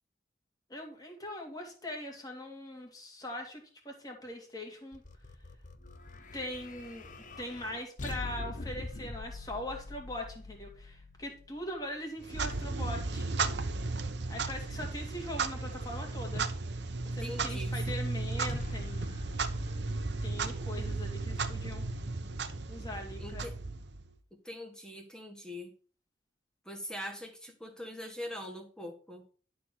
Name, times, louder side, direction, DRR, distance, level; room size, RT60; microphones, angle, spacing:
voice 1, 0.7-5.0 6.3-7.1 7.4-13.3 14.3-16.5 17.1-19.2 20.2-21.8 22.7-23.5, left 1 dB, 20° left, 1 dB, 2.3 m, -41 dB
sound 1, 4.9-12.2 18.5-22.6, left 3 dB, 45° left, 0.9 m, -45 dB
Clock, 12.2-24.2, right 3 dB, 70° right, 1.0 m, -35 dB
voice 2, 17.0-17.8 23.2-23.6 24.4-25.7 26.6-29.2, left 1 dB, 5° left, 4 dB, 1.4 m, -42 dB
11.5 x 4.4 x 6.2 m, 0.41 s
head